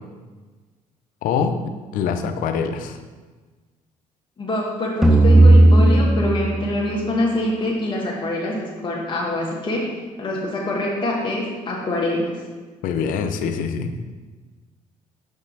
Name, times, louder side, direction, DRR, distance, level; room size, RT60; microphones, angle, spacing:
voice 1, 1.2-3.0 12.8-13.9, left 6 dB, 75° left, 8 dB, 0.6 m, -24 dB
voice 2, 4.4-12.3, left 1 dB, 35° left, -4 dB, 1.4 m, -25 dB
sound 1, 5.0-8.3, right 1 dB, 5° right, 0.9 m, -15 dB
6.1 x 5.3 x 4.0 m, 1.3 s
supercardioid pair, 75°, 14 cm